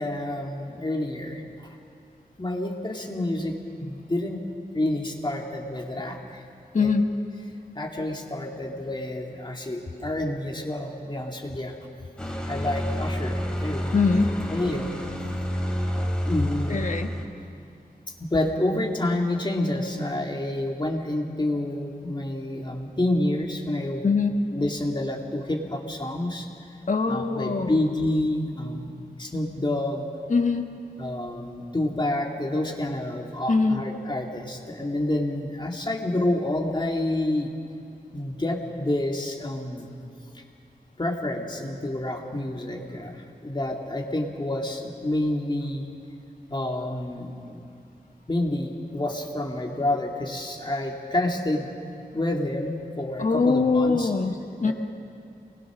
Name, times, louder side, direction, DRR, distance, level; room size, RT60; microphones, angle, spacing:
voice 1, 0.0-1.4 2.4-4.4 4.7-6.4 6.7-6.9 7.7-11.8 12.5-13.9 14.5-15.0 16.2-16.9 18.2-24.1 24.5-26.5 27.1-30.1 31.0-37.5 38.1-39.9 40.3-40.4 41.0-45.9 46.5-47.7 48.3-51.7 52.1-54.1 54.6-54.7, left 1 dB, 30° left, 0 dB, 2.3 m, -28 dB
voice 2, 6.7-7.1 13.9-14.4 16.7-17.1 24.0-24.5 26.9-27.8 30.3-30.7 33.5-33.9 53.2-54.7, left 4 dB, 50° left, 5 dB, 1.4 m, -22 dB
sound 1, 12.2-17.2, equal, 5° left, 3.0 m, -29 dB
28.5 x 20.5 x 6.2 m, 2.5 s
wide cardioid pair, 100°, 16 cm